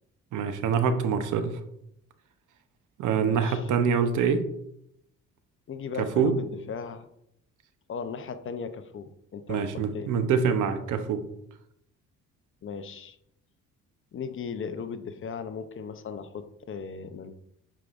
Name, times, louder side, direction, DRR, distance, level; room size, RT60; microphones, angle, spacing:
voice 1, 0.3-1.6 3.0-4.4 6.2-6.4 9.5-11.2, right 6 dB, 80° right, 8 dB, 0.8 m, -25 dB
voice 2, 3.2-3.7 5.7-7.1 7.9-10.1 12.6-13.2 14.1-17.3, left 6 dB, 45° left, 10 dB, 0.6 m, -37 dB
8.9 x 4.8 x 2.5 m, 0.77 s
cardioid pair, 90°, 30 cm